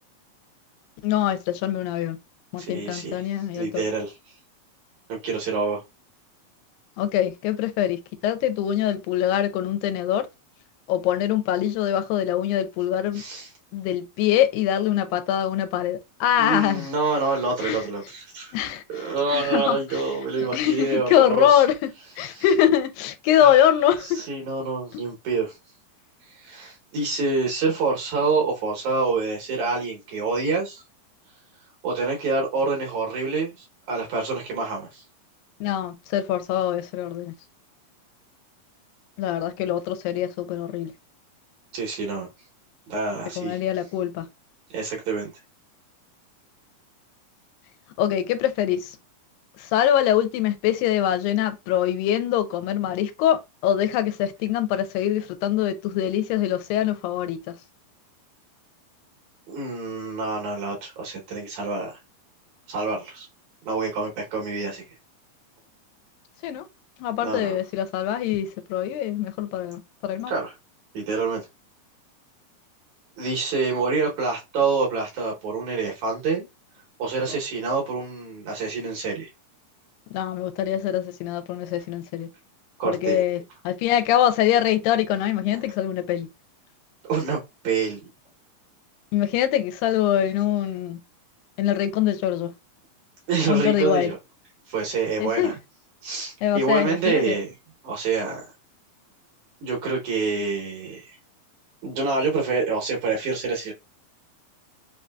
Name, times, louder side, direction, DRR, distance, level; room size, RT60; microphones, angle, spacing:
voice 1, 1.0-2.2 2.5-3.8 7.0-10.3 10.9-13.2 13.7-16.9 17.6-17.8 18.5-20.0 20.4-21.9 22.2-24.2 24.9-25.0 35.6-37.3 39.2-40.9 43.4-44.3 48.0-49.0 49.6-57.5 66.4-66.7 67.0-70.3 80.1-82.3 82.9-86.3 89.1-91.0 91.6-92.5 93.5-94.1 95.2-95.5 96.4-97.4, left 11 dB, 85° left, 2.4 m, -23 dB
voice 2, 2.6-3.2 3.5-4.1 5.1-5.8 13.1-13.5 16.4-18.5 18.9-21.6 22.3-22.5 23.4-23.6 24.0-25.5 26.3-30.8 31.8-35.0 41.7-42.3 42.9-43.6 44.7-45.3 59.5-62.0 62.7-63.3 63.7-64.8 67.2-67.6 70.3-70.5 70.9-71.4 73.2-76.5 77.0-79.3 82.8-83.2 85.5-85.6 87.0-88.0 93.3-94.2 94.7-95.6 96.0-97.5 97.8-98.5 99.6-101.2 101.8-103.7, right 4 dB, 70° right, 2.0 m, -27 dB
5.3 x 2.6 x 2.2 m
omnidirectional pair, 4.0 m